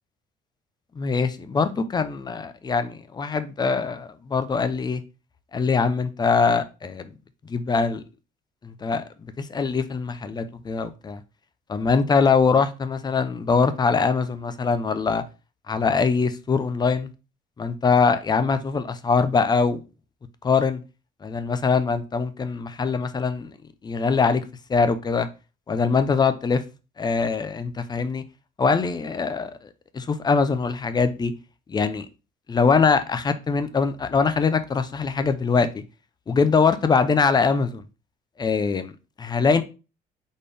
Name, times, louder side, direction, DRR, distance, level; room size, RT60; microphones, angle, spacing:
voice 1, 1.0-5.0 5.5-7.1 7.5-8.0 8.6-9.0 9.4-11.2 11.7-15.2 15.7-17.1 17.6-19.8 20.4-20.8 21.2-23.5 23.8-24.4 24.7-25.3 25.7-26.6 27.0-28.2 28.6-29.5 29.9-31.3 31.7-32.1 32.5-35.8 36.3-37.8 38.4-38.9 39.2-39.6, left 5 dB, 25° left, 0.6 m, -22 dB
4.3 x 3.4 x 3.4 m
cardioid pair, 110°, 17 cm